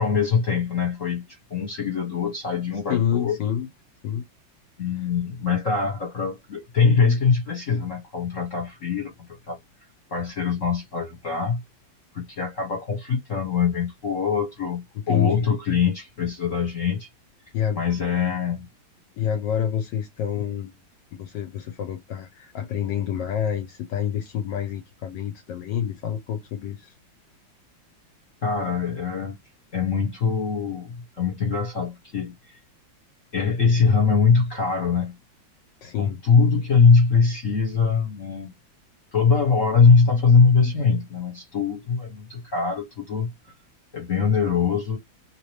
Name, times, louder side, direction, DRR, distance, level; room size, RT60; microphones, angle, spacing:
voice 1, 0.0-3.3 4.8-9.6 10.1-11.6 12.1-17.1 17.7-18.7 28.4-29.4 29.7-32.6 33.3-35.1 36.0-38.5 39.1-43.3 43.9-45.0, left 5 dB, 45° left, 1.3 m, -22 dB
voice 2, 2.9-3.7 4.0-4.2 5.0-5.1 15.0-15.5 17.5-17.9 19.2-20.7 21.2-26.9 35.8-36.2, left 9 dB, 70° left, 1.2 m, -27 dB
3.3 x 2.9 x 3.1 m
omnidirectional pair, 2.1 m